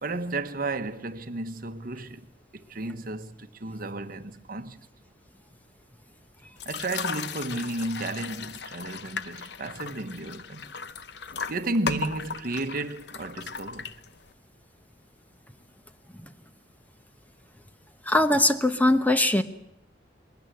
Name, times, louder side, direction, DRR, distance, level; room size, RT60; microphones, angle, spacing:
voice 1, 0.0-2.3 2.5-4.9 6.6-10.7 11.5-13.9, right 2 dB, 50° right, 1.2 m, -33 dB
sound 1, 6.6-14.3, left 6 dB, 65° left, 0.8 m, -37 dB
voice 2, 18.0-19.4, left 1 dB, 10° left, 1.0 m, -21 dB
22.0 x 19.5 x 9.1 m
head